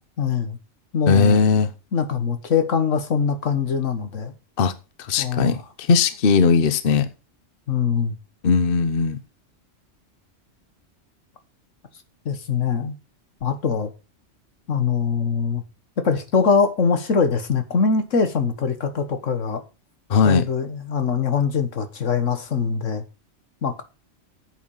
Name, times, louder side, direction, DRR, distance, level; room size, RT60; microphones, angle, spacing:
voice 1, 0.2-0.6 0.9-1.4 1.9-4.3 5.2-5.6 7.7-8.2 12.3-12.9 13.4-13.9 14.7-15.6 16.0-19.6 20.2-23.0 23.6-23.8, left 6 dB, 80° left, 1.7 m, -22 dB
voice 2, 1.1-1.7 4.6-4.7 5.0-7.1 8.4-9.2 20.1-20.4, left 5 dB, 50° left, 1.1 m, -18 dB
9.3 x 8.3 x 5.5 m
omnidirectional pair, 1.3 m